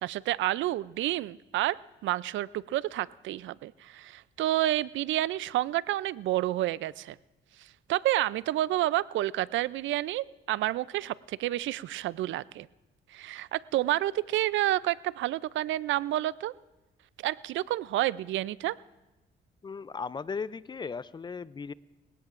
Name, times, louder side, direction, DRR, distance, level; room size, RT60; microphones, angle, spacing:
voice 1, 0.0-1.8 2.0-7.2 7.9-12.7 13.1-16.5 17.2-18.8, right 15 dB, 75° right, 20 dB, 0.4 m, -29 dB
voice 2, 19.6-21.7, left 5 dB, 25° left, 18 dB, 0.4 m, -37 dB
20.0 x 18.0 x 2.5 m, 1.0 s
cardioid pair, 90°, 20 cm